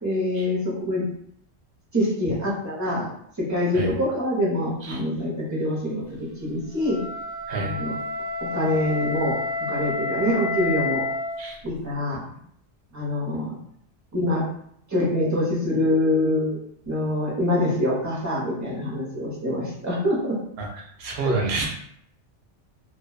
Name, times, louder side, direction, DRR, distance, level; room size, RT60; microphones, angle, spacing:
voice 1, 0.0-1.0 1.9-3.1 3.4-7.0 7.6-7.9 8.4-11.0 11.6-12.2 12.9-13.6 14.1-14.4 14.9-16.6 16.9-20.3 21.2-21.4, left 1 dB, 20° right, -6 dB, 0.6 m, -25 dB
Wind instrument woodwind instrument, 6.7-11.4, left 2 dB, 40° left, 0.8 m, -29 dB
voice 2, 20.6-21.7, right 3 dB, 65° right, -1 dB, 0.7 m, -29 dB
2.5 x 2.1 x 2.3 m, 0.70 s
omnidirectional pair, 1.2 m